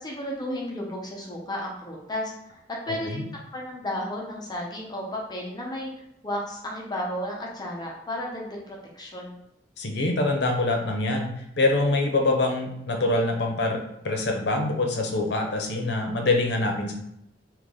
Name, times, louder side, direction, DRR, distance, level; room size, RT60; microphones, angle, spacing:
voice 1, 0.0-2.3 2.7-5.9 6.2-9.4, left 1 dB, 25° left, -2 dB, 0.8 m, -33 dB
voice 2, 2.9-3.2 9.8-11.3 11.6-16.9, left 2 dB, 65° left, 3 dB, 0.8 m, -25 dB
3.6 x 2.9 x 3.7 m, 0.80 s
head